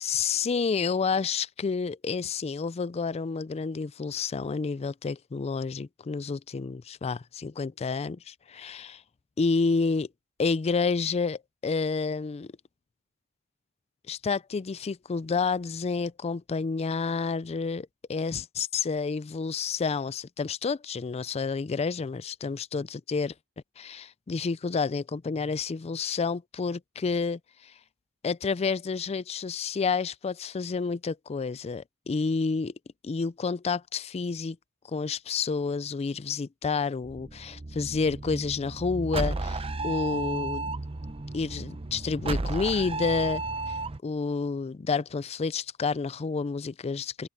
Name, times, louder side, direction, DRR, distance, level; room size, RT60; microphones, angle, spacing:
voice 1, 0.0-9.0 9.4-10.1 10.4-12.5 14.1-23.3 23.8-27.7 28.2-32.7 33.0-34.6 34.9-40.7 41.3-43.4 43.7-43.8 44.0-47.3, left 4 dB, 30° left, 0.4 m, -29 dB
sound 1, 37.0-44.0, right 2 dB, 25° right, 0.7 m, -33 dB
open air
head